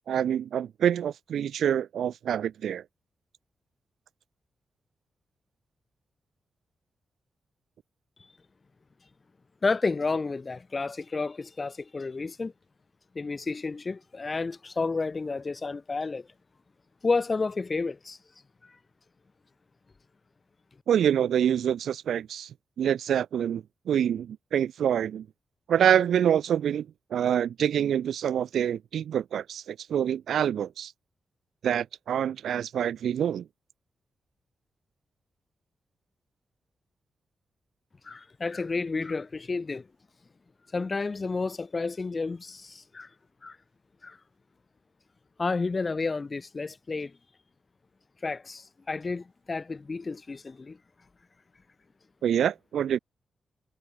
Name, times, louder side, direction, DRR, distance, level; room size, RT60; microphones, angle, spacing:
voice 1, 0.1-2.8 20.9-25.3 25.7-30.9 31.6-33.5 52.2-53.0, right 9 dB, 80° right, 0.4 m, -26 dB
voice 2, 9.6-12.5 13.1-16.3 17.0-18.2 38.0-39.9 40.7-43.1 43.4-43.6 44.0-44.2 45.4-47.1 48.2-50.8, left 4 dB, 40° left, 0.6 m, -31 dB
cardioid pair, 60°, 0 cm